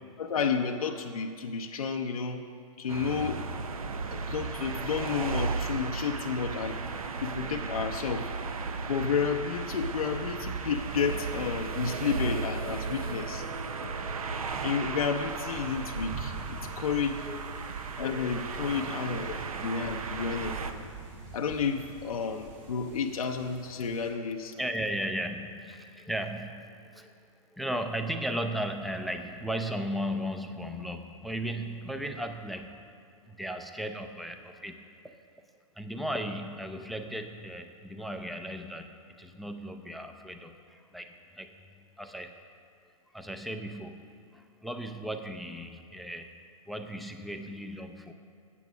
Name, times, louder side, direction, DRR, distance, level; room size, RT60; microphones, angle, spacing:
voice 1, 0.2-2.5 2.8-3.5 4.1-6.8 7.2-8.3 8.9-13.5 13.8-13.9 14.6-17.3 18.0-20.9 21.3-24.5, left 6 dB, 85° left, 3 dB, 0.6 m, -31 dB
sound 1, 2.9-20.7, right 4 dB, 85° right, 0.7 m, -35 dB
sound 2, 15.4-24.1, right 4 dB, 45° right, 2.7 m, -45 dB
voice 2, 17.2-17.8 18.1-18.8 19.2-19.7 20.0-20.4 24.6-27.1 27.5-32.9 33.2-35.2 35.8-42.4 43.1-46.4 46.7-48.1, equal, ahead, 6 dB, 0.4 m, -36 dB
8.4 x 7.9 x 6.0 m, 2.4 s
hypercardioid pair, 125°, 18 cm